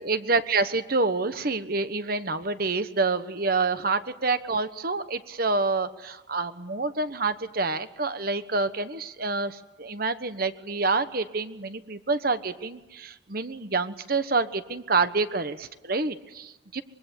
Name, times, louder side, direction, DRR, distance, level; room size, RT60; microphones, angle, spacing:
voice 1, 0.0-16.8, right 3 dB, 50° right, 11 dB, 1.2 m, -27 dB
25.0 x 22.5 x 8.4 m, 1.0 s
head